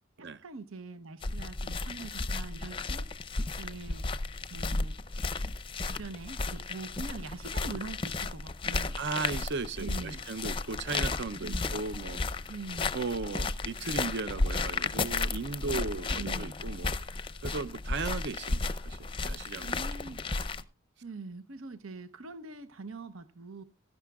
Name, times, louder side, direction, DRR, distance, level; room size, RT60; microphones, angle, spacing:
voice 1, 0.2-3.1 3.6-4.1 4.5-5.0 5.8-9.0 9.8-10.2 11.4-11.7 12.5-13.0 15.6-16.6 19.6-20.2 21.0-23.6, right 3 dB, 80° right, 0.9 m, -43 dB
sound 1, 1.2-20.6, left 3 dB, 25° left, 0.6 m, -34 dB
voice 2, 9.0-12.4 12.9-16.9 17.4-19.9, right 4 dB, 55° right, 0.6 m, -36 dB
17.0 x 13.0 x 2.3 m
head